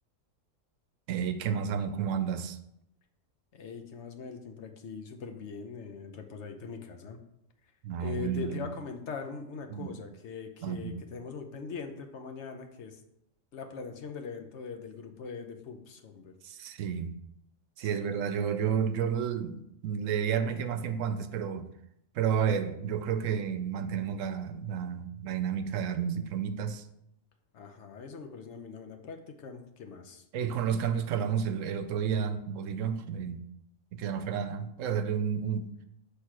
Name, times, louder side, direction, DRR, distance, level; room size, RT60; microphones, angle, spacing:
voice 1, 1.1-2.6 7.8-8.6 9.7-9.9 10.6-11.0 16.4-17.2 17.8-21.7 22.1-26.8 30.3-33.5 33.9-35.7, right 7 dB, 80° right, 0.9 m, -31 dB
voice 2, 3.5-7.2 8.0-13.0 13.5-16.3 17.8-18.1 27.5-30.2, left 5 dB, 65° left, 1.0 m, -41 dB
6.4 x 3.3 x 5.8 m
omnidirectional pair, 1.3 m